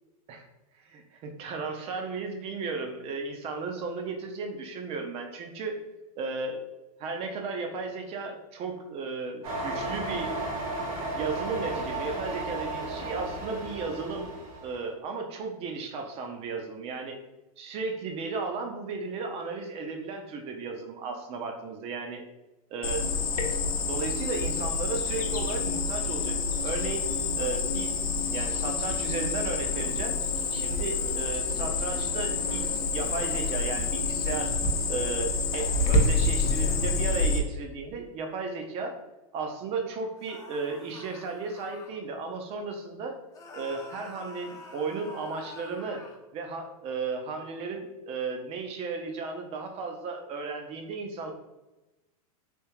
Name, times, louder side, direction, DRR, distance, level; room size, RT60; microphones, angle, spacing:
voice 1, 0.8-5.7 6.2-6.6 7.0-10.3 11.1-14.3 14.6-17.2 17.6-22.2 22.7-23.1 23.8-26.4 26.6-27.1 27.3-28.0 28.3-30.2 30.5-34.5 34.9-39.0 39.3-43.1 43.5-46.0 46.3-51.3, right 4 dB, 30° right, 4 dB, 0.6 m, -34 dB
sound 1, 9.4-14.7, right 2 dB, 75° right, 1.2 m, -34 dB
Cricket, 22.8-37.4, left 3 dB, 75° left, 0.7 m, -28 dB
sound 2, 40.2-41.9 43.3-46.2, left 3 dB, 20° left, 0.6 m, -46 dB
3.5 x 2.7 x 3.0 m, 1.0 s
hypercardioid pair, 130°, 19 cm